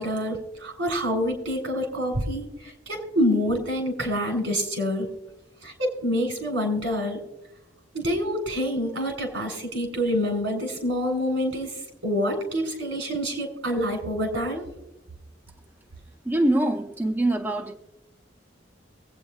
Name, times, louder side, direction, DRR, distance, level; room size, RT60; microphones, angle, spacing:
voice 1, 0.0-5.1 5.6-7.2 7.9-11.7 12.0-14.7, equal, 80° right, 3.4 m, -27 dB
voice 2, 16.2-17.8, right 1 dB, 10° right, 0.5 m, -24 dB
23.5 x 8.6 x 2.3 m
head